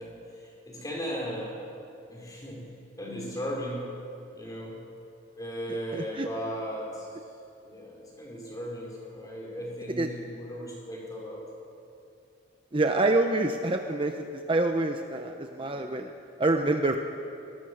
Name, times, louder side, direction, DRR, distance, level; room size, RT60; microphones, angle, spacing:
voice 1, 0.0-1.6 2.1-2.6 3.0-3.9 4.3-4.8 5.4-7.2 7.6-11.5, equal, 20° left, -3 dB, 5.2 m, -36 dB
voice 2, 5.9-6.3 10.0-10.1 12.7-16.1 16.4-17.0, right 2 dB, 25° right, 5 dB, 0.8 m, -26 dB
22.0 x 20.5 x 6.5 m, 2.6 s
head